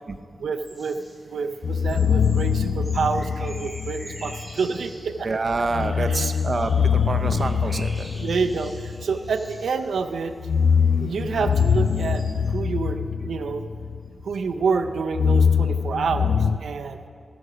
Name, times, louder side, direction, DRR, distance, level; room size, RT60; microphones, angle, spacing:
voice 1, 0.4-1.0 1.3-5.3 6.0-6.3 6.8-6.9 8.1-10.3 11.0-12.2 12.5-13.7 14.2-17.0, right 5 dB, 85° right, 8 dB, 0.5 m, -28 dB
sound 1, 0.6-12.5, equal, 10° left, 3.4 m, -47 dB
sound 2, 1.6-4.5 5.7-9.6 10.3-14.3 14.6-16.6, left 6 dB, 65° left, 0.3 m, -23 dB
voice 2, 5.2-6.7 7.1-8.1, right 3 dB, 45° right, 7 dB, 0.7 m, -26 dB
15.0 x 6.9 x 5.0 m, 2.2 s
wide cardioid pair, 105°, 0 cm